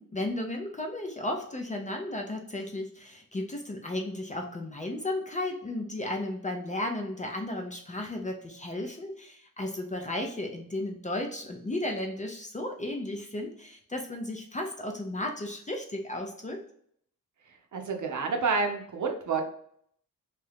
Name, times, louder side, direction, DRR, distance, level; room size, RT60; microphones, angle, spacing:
voice 1, 0.0-16.6, left 1 dB, 20° left, 2 dB, 0.4 m, -34 dB
voice 2, 17.7-19.4, right 4 dB, 60° right, 3 dB, 0.6 m, -29 dB
2.7 x 2.4 x 3.3 m, 0.66 s
wide cardioid pair, 135°, 35 cm